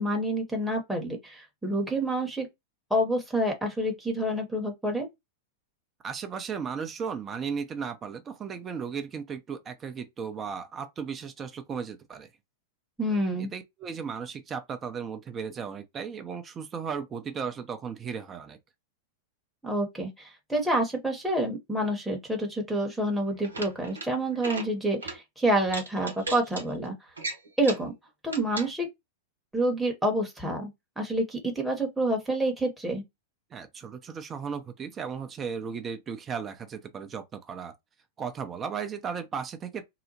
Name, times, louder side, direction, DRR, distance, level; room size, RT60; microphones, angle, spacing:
voice 1, 0.0-2.5 2.9-5.1 13.0-13.5 19.6-26.9 27.6-27.9 28.2-28.9 29.5-30.7 31.0-33.0, right 1 dB, 5° right, 0.8 m, -28 dB
voice 2, 6.0-12.3 13.4-18.6 33.5-37.7 38.2-39.8, right 6 dB, 25° right, 0.5 m, -35 dB
sound 1, 23.3-24.1 24.4-24.7 25.0-25.2 25.7-26.6 27.2-27.9 28.3-28.7, right 3 dB, 85° right, 0.7 m, -36 dB
2.8 x 2.0 x 2.7 m
hypercardioid pair, 100°, 0 cm